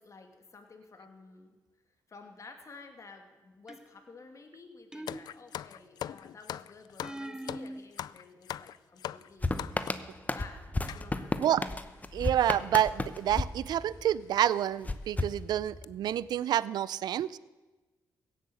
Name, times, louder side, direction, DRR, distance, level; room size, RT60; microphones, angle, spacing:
voice 1, 0.0-1.6 2.1-9.6 10.3-11.7, left 4 dB, 50° left, 4 dB, 2.5 m, -52 dB
sound 1, 3.7-4.2 4.9-5.8 7.0-7.8, right 1 dB, 10° right, 0.7 m, -42 dB
sound 2, 5.1-10.1 10.9-11.1 11.8-11.9 12.0-12.2 13.2-13.4 13.9-14.0 14.5-14.6 15.0-15.3 15.6-15.9, left 11 dB, 70° left, 0.3 m, -41 dB
sound 3, 9.4-14.3 14.8-16.1, left 2 dB, 20° left, 0.9 m, -34 dB
voice 2, 12.1-17.3, right 11 dB, 75° right, 20 dB, 0.4 m, -28 dB
16.5 x 8.3 x 7.0 m, 1.2 s
supercardioid pair, 60°, 7 cm